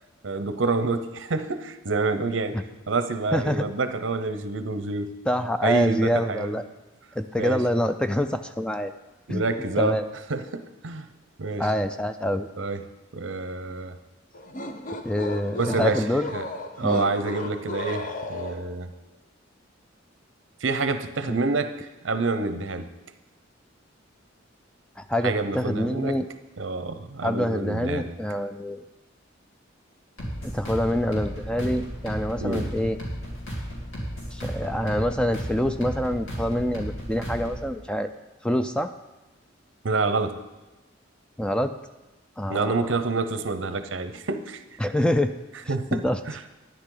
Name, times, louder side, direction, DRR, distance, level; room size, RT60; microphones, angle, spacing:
voice 1, 0.2-2.6 2.9-5.1 5.6-6.6 7.4-7.6 9.3-10.0 10.3-11.1 11.4-11.7 12.6-12.8 13.1-14.0 15.6-16.1 16.3-16.5 16.8-18.9 20.6-22.9 25.2-26.2 26.6-28.1 32.4-32.7 39.8-40.4 42.5-44.6 45.7-46.4, right 3 dB, 65° right, 10 dB, 0.7 m, -27 dB
voice 2, 3.3-3.7 5.3-6.6 7.2-8.9 9.3-9.4 9.8-10.0 11.6-12.5 15.0-16.3 16.8-17.1 21.3-21.4 25.0-26.3 27.2-28.8 30.4-33.0 34.3-38.1 38.4-38.9 41.4-41.7 42.4-42.9 44.8-45.3 45.9-46.2, equal, 5° left, 9 dB, 0.3 m, -26 dB
sound 1, 14.3-18.8, left 2 dB, 40° left, 0.7 m, -35 dB
sound 2, 30.2-37.7, equal, 90° left, 3.2 m, -34 dB
11.5 x 10.0 x 3.9 m, 1.1 s
head